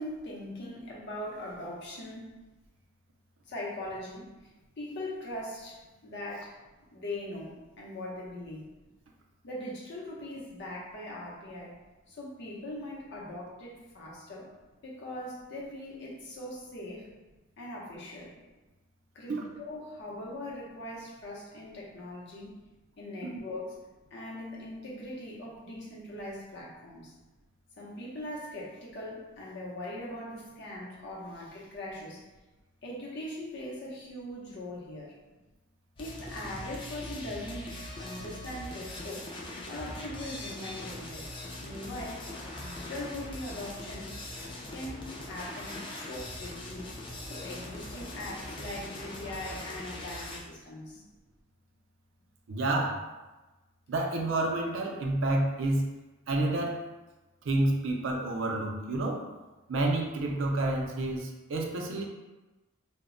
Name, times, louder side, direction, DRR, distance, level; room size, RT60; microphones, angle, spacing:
voice 1, 0.0-2.3 3.5-6.5 6.9-8.7 9.4-11.8 12.1-14.5 14.8-17.1 17.6-18.3 19.1-22.6 23.0-23.8 24.1-27.1 27.8-32.2 32.8-35.1 36.0-39.3 39.7-41.3 41.6-44.2 44.7-47.0 47.3-51.0, left 1 dB, 60° left, -4 dB, 0.7 m, -41 dB
sound 1, 36.0-50.4, left 1 dB, 25° left, 0.4 m, -41 dB
voice 2, 52.5-53.1 53.9-55.9 56.3-56.8 57.4-59.3 59.7-62.0, right 2 dB, 65° right, 1 dB, 0.4 m, -29 dB
2.1 x 2.0 x 3.6 m, 1.1 s
head